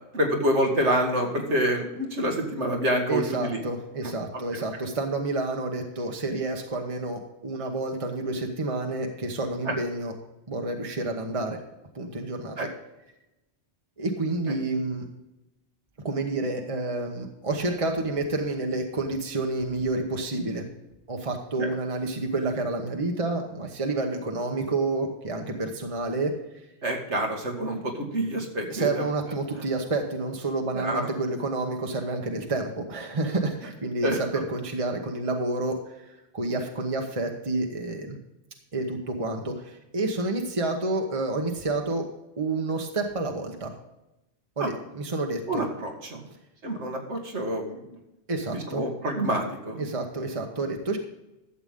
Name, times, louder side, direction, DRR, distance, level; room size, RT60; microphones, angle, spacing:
voice 1, 0.1-3.6 4.5-4.6 12.6-12.7 21.6-21.7 26.8-29.0 30.7-31.1 34.0-34.2 44.6-44.7 45.5-46.3 46.6-47.8 48.5-49.9, right 1 dB, 85° right, 2 dB, 2.2 m, -27 dB
voice 2, 3.1-10.1 10.5-11.6 11.9-12.7 14.0-15.1 16.0-20.7 21.1-26.3 28.7-38.2 38.7-42.0 42.4-43.7 44.6-45.7 48.3-48.8 49.8-51.0, right 2 dB, 30° right, 2 dB, 1.1 m, -29 dB
12.5 x 7.9 x 3.7 m, 0.94 s
omnidirectional pair, 1.1 m